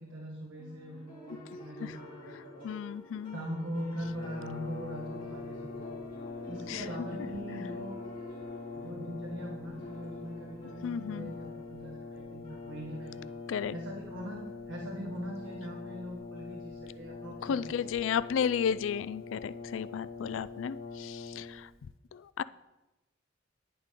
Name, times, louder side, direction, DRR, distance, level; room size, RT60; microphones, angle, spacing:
voice 1, 0.0-2.7 3.3-6.0 6.5-8.0 8.7-13.3 13.7-17.8, equal, 90° right, -2 dB, 1.7 m, -41 dB
sound 1, 0.6-16.2, left 1 dB, 25° left, 4.2 m, -51 dB
voice 2, 2.6-3.4 6.7-6.8 10.8-11.3 13.5-13.7 17.4-21.7 22.1-22.4, left 7 dB, 80° left, 16 dB, 0.3 m, -33 dB
Brass instrument, 4.0-21.8, left 4 dB, 50° left, 0.8 m, -43 dB
11.0 x 10.5 x 3.7 m, 1.0 s
head